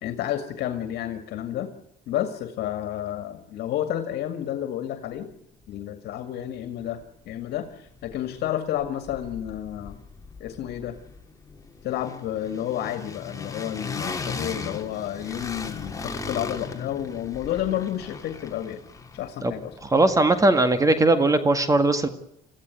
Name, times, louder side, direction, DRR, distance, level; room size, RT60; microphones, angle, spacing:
voice 1, 0.0-1.7 2.1-5.3 5.7-7.0 7.3-10.0 10.4-10.9 11.8-18.8 19.1-19.7, left 11 dB, 75° left, 9 dB, 2.1 m, -30 dB
sound 1, 7.0-7.1 7.4-8.5 8.8-21.0, left 4 dB, 20° left, 2.8 m, -38 dB
voice 2, 19.8-22.1, right 2 dB, 20° right, 10 dB, 1.8 m, -19 dB
22.0 x 15.0 x 9.3 m, 0.76 s
cardioid pair, 110°, 17 cm